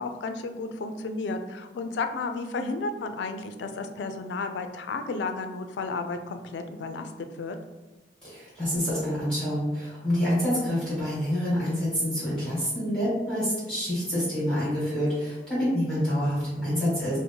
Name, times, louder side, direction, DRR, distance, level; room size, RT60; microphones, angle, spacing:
voice 1, 0.0-7.1 7.4-7.6, left 3 dB, 85° left, 8 dB, 0.3 m, -32 dB
voice 2, 8.2-17.2, equal, 5° left, -10 dB, 1.3 m, -27 dB
4.3 x 2.1 x 2.8 m, 1.1 s
head